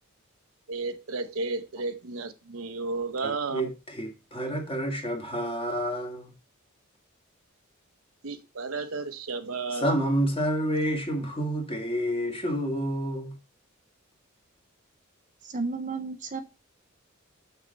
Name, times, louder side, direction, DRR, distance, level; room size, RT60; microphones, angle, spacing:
voice 1, 0.7-3.7 8.2-10.0, right 3 dB, 75° right, 0.8 m, -33 dB
voice 2, 3.2-6.3 9.7-13.3, equal, 25° left, 1.8 m, -29 dB
voice 3, 15.4-16.4, right 4 dB, 35° right, 0.6 m, -32 dB
6.7 x 6.5 x 3.9 m
head